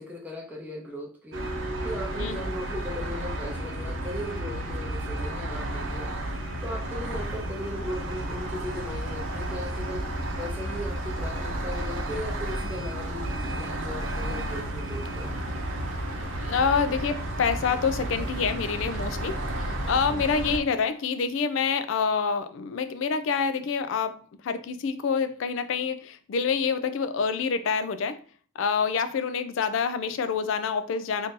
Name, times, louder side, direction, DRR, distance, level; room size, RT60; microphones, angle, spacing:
voice 1, 0.0-1.4 1.8-6.1 6.6-10.0 10.4-15.3 19.8-20.2, left 1 dB, 10° right, -1 dB, 0.6 m, -38 dB
sound 1, 1.3-20.6, right 1 dB, 85° right, 0.7 m, -32 dB
voice 2, 16.4-28.2 28.6-31.3, left 5 dB, 75° left, 11 dB, 0.4 m, -27 dB
2.7 x 2.6 x 3.6 m, 0.42 s
head